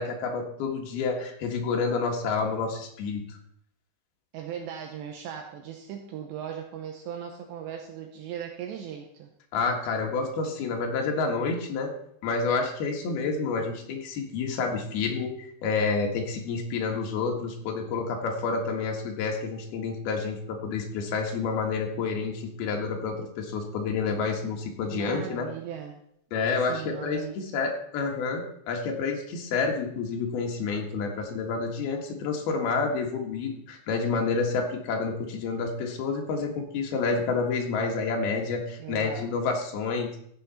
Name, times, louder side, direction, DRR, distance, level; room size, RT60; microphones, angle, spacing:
voice 1, 0.0-3.4 9.5-11.9 12.2-25.5 26.3-40.2, left 4 dB, 65° left, 1 dB, 3.3 m, -29 dB
voice 2, 4.3-9.3 24.9-26.0 26.7-27.4 38.8-39.4, right 9 dB, 75° right, 4 dB, 3.0 m, -38 dB
14.5 x 8.0 x 4.3 m, 0.70 s
omnidirectional pair, 5.4 m